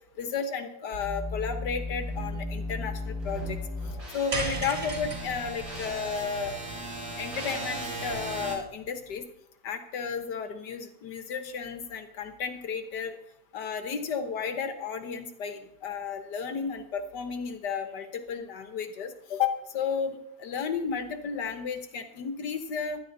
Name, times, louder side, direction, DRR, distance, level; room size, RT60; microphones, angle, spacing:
voice 1, 0.2-3.6 4.1-6.5 7.2-9.3 9.6-13.2 13.5-23.0, left 6 dB, 90° left, 8 dB, 1.9 m, -33 dB
sound 1, 0.9-8.6, equal, 65° right, 5.1 m, -36 dB
sound 2, 4.3-8.7, right 1 dB, 45° right, 2.4 m, -37 dB
15.5 x 12.5 x 4.0 m, 0.79 s
omnidirectional pair, 1.8 m